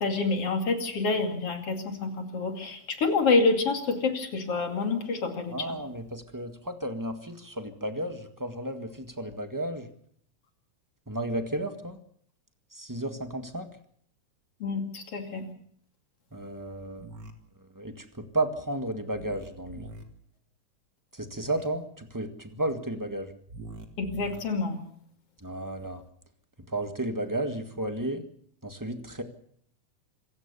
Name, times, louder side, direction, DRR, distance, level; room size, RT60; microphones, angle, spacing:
voice 1, 0.0-5.8 14.6-15.5 24.0-24.8, left 3 dB, 55° left, 5 dB, 3.4 m, -27 dB
voice 2, 5.5-9.9 11.1-12.0 12.7-13.7 16.3-17.1 17.7-19.9 21.1-23.3 25.4-26.0 26.7-28.2 28.6-29.2, right 1 dB, 10° right, 7 dB, 0.9 m, -33 dB
sound 1, 16.9-17.3 19.1-20.0 21.3-21.7 23.5-24.4, right 2 dB, 40° right, 2.6 m, -44 dB
26.5 x 16.0 x 6.9 m, 0.64 s
omnidirectional pair, 3.3 m